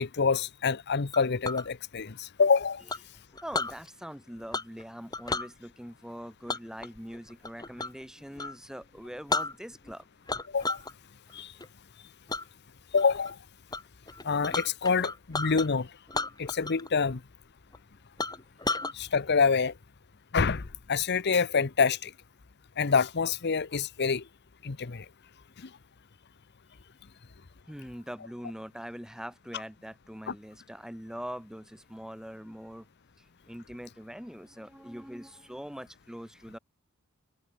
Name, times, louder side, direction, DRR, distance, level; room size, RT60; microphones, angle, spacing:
voice 1, 0.0-2.8 10.5-10.8 11.3-11.5 12.9-13.4 14.2-15.9 16.4-17.2 18.9-19.7 20.3-22.1 22.8-24.2 24.6-25.0 30.3-30.4, left 5 dB, 50° left, 0.8 m, -26 dB
Chink clink, 1.1-1.7 2.9-3.8 4.5-4.8 5.1-5.5 6.5-8.0 8.4-8.6 9.0-9.1 9.3-9.9 10.3-10.9 11.3-11.7 12.3-12.4 13.0-13.3 13.7-13.8 14.1-15.7 16.1-16.9 17.2-17.3 17.7-17.8 18.2-18.9, left 3 dB, 20° left, 2.1 m, -33 dB
voice 2, 3.4-10.0 27.7-32.9 33.5-36.6, equal, 5° right, 2.4 m, -42 dB
head